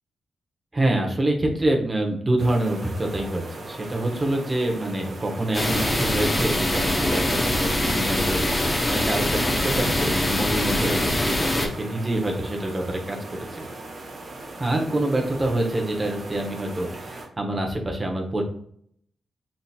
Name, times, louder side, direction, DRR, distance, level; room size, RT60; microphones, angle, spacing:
voice 1, 0.7-13.7 14.6-18.4, right 1 dB, 20° right, 1 dB, 1.0 m, -26 dB
sound 1, 2.4-17.3, right 2 dB, 45° right, 1.2 m, -39 dB
sound 2, 5.5-11.7, left 1 dB, 20° left, 1.0 m, -23 dB
4.2 x 3.9 x 2.4 m, 0.64 s
cardioid pair, 100°, 0 cm